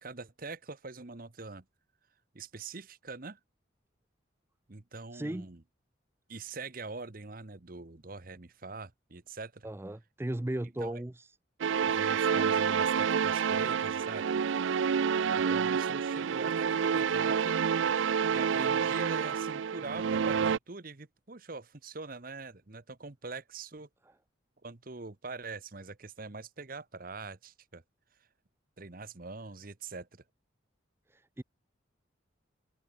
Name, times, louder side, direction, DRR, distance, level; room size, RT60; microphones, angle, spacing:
voice 1, 0.0-1.6 2.3-3.4 4.7-5.6 6.3-9.7 10.8-11.0 11.8-14.4 15.3-17.8 18.3-23.9 24.6-27.8 28.8-30.2, right 3 dB, 45° right, 1.1 m, -43 dB
voice 2, 5.1-5.5 9.6-11.3 31.1-31.4, right 1 dB, 10° right, 0.4 m, -36 dB
sound 1, 11.6-20.6, right 7 dB, 70° right, 0.4 m, -28 dB
head